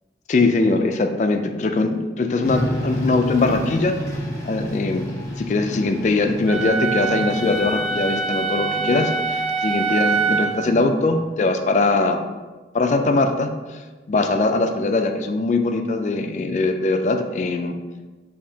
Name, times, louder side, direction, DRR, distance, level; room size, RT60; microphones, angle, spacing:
voice 1, 0.3-4.0 4.5-12.2 12.7-13.8 14.1-17.7, left 3 dB, 40° left, 6 dB, 0.3 m, -21 dB
sound 1, 2.4-8.2, equal, 15° left, 0.8 m, -30 dB
Wind instrument woodwind instrument, 6.5-10.6, right 5 dB, 5° right, 1.1 m, -24 dB
6.8 x 2.8 x 2.7 m, 1.3 s
head